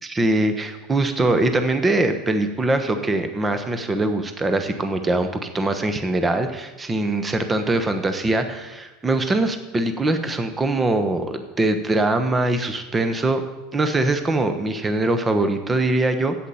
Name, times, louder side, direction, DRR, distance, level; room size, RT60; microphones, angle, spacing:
voice 1, 0.0-13.4 13.7-16.4, right 2 dB, 20° right, 8 dB, 1.2 m, -22 dB
8.2 x 7.9 x 7.2 m, 1.1 s
hypercardioid pair, 85°, 0 cm